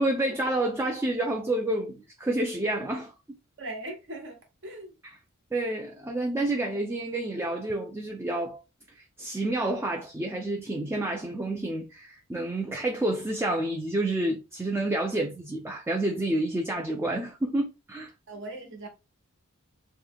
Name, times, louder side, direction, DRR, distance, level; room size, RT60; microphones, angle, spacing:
voice 1, 0.0-3.1 5.0-5.1 5.5-8.6 8.9-18.1, right 1 dB, 10° right, 0.4 m, -29 dB
voice 2, 3.6-4.4 4.6-4.9 15.2-15.3 18.3-18.9, right 1 dB, 60° right, 1.1 m, -39 dB
3.1 x 2.2 x 3.5 m
head